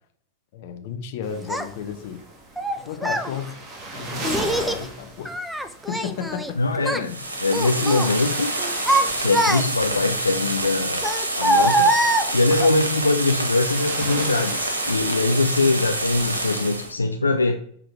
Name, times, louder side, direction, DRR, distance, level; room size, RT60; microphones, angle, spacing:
voice 1, 0.5-2.2 2.8-3.6 3.9-5.4 5.9-6.6 6.9-7.3, left 8 dB, 50° left, 6 dB, 1.0 m, -33 dB
sound 1, 1.2-16.9, right 2 dB, 30° right, 1.7 m, -39 dB
Child speech kid speaking, 1.5-1.6 2.6-3.3 4.2-4.8 5.3-6.5 6.8-7.1 7.5-8.1 8.6-10.0 11.0-12.7, right 1 dB, ahead, 0.6 m, -23 dB
voice 2, 6.6-7.1 7.4-8.5 9.2-11.0 11.3-11.9 12.3-17.6, left 3 dB, 80° left, 4 dB, 0.5 m, -22 dB
sound 2, 7.0-16.9, right 2 dB, 75° right, 1.0 m, -27 dB
6.7 x 3.8 x 4.6 m, 0.62 s
figure-of-eight pair, 90°, 0 cm